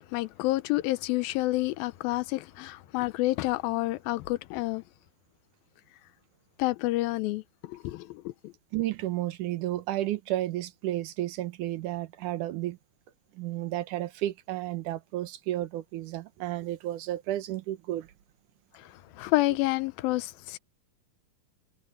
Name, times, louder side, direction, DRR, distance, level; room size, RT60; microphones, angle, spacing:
voice 1, 0.0-4.8 6.6-8.3 18.7-18.9 19.2-20.6, left 19 dB, 90° left, 2.6 m, -29 dB
voice 2, 8.7-12.8 13.4-18.1, right 14 dB, 70° right, 2.4 m, -32 dB
omnidirectional pair, 4.1 m